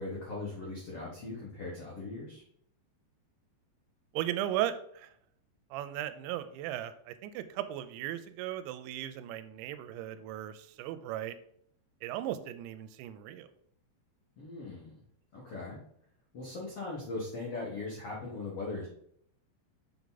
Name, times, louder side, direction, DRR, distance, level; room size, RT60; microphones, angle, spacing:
voice 1, 0.0-2.4 14.4-14.9 15.3-15.8 16.3-18.9, left 3 dB, 70° left, -5 dB, 1.4 m, -39 dB
voice 2, 4.1-5.1 5.7-11.4 12.0-13.5, right 12 dB, 90° right, 11 dB, 2.9 m, -37 dB
6.9 x 4.7 x 4.0 m, 0.69 s
omnidirectional pair, 5.1 m